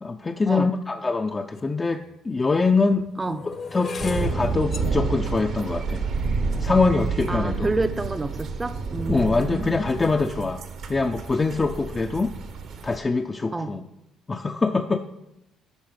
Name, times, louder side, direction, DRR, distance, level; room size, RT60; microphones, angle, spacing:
voice 1, 0.0-3.1 3.7-6.0 6.6-7.7 9.1-10.6 10.9-12.3 12.8-13.8 14.3-15.0, left 3 dB, 25° left, 4 dB, 0.5 m, -24 dB
sound 1, 1.6-1.7 2.4-8.6 9.2-9.6 9.9-10.2, left 4 dB, 45° left, 0.9 m, -38 dB
sound 2, 4.0-13.0, right 4 dB, 65° right, 1.2 m, -29 dB
voice 2, 7.3-10.3 13.5-13.8, right 2 dB, 20° right, 10 dB, 0.6 m, -29 dB
10.5 x 4.1 x 6.3 m, 0.88 s
supercardioid pair, 80°, 0 cm